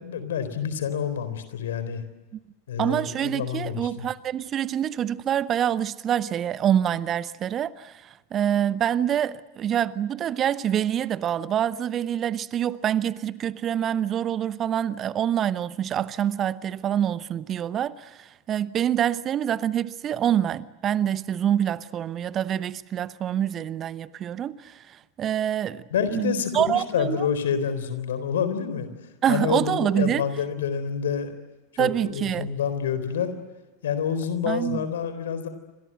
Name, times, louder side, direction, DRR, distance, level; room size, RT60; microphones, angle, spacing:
voice 1, 0.0-2.0 2.7-4.1 25.9-28.9 29.3-31.3 31.7-33.3 33.8-35.5, left 7 dB, 65° left, 4.1 m, -28 dB
voice 2, 2.8-25.8 26.1-27.3 29.2-30.2 31.8-32.5 34.4-34.8, right 10 dB, 30° right, 0.9 m, -26 dB
28.0 x 26.0 x 8.0 m
figure-of-eight pair, 85°, 0 cm